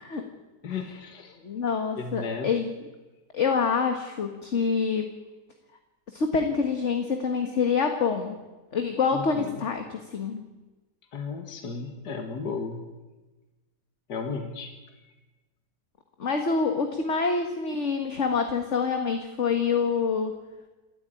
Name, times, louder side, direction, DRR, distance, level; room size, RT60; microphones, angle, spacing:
voice 1, 0.6-1.4 2.0-2.5 9.1-9.6 11.1-12.9 14.1-14.7 15.0-15.1, left 5 dB, 65° left, 5 dB, 2.3 m, -34 dB
voice 2, 1.4-2.7 3.3-5.1 6.1-8.4 8.7-10.4 16.2-20.3, left 5 dB, 40° left, 5 dB, 1.8 m, -26 dB
28.0 x 13.5 x 9.1 m, 1.2 s
omnidirectional pair, 1.9 m